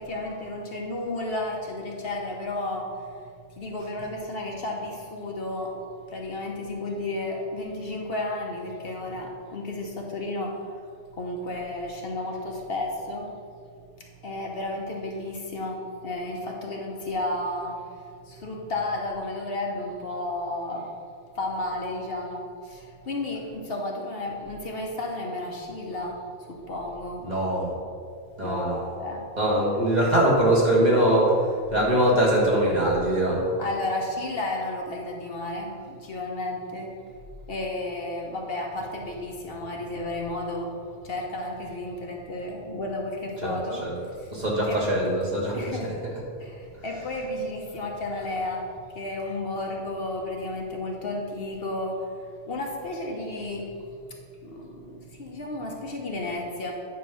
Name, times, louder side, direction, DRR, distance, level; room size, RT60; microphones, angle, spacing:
voice 1, 0.0-2.9 3.6-5.8 6.1-10.6 11.1-13.3 14.2-17.8 18.3-20.9 21.3-26.2 26.5-27.3 28.4-29.3 29.7-29.8 33.6-36.9 37.5-40.7 41.0-43.9 44.2-44.3 44.7-44.8 45.5-45.9 46.4-48.7 48.9-52.1 52.5-53.7 54.4-56.7, left 2 dB, 60° left, 0 dB, 1.1 m, -32 dB
voice 2, 27.2-27.7 28.4-28.8 29.4-31.4 31.7-33.5 43.4-43.5 43.8-43.9 44.3-45.9, right 1 dB, 40° right, -5 dB, 1.7 m, -22 dB
9.3 x 3.1 x 6.0 m, 2.2 s
omnidirectional pair, 1.2 m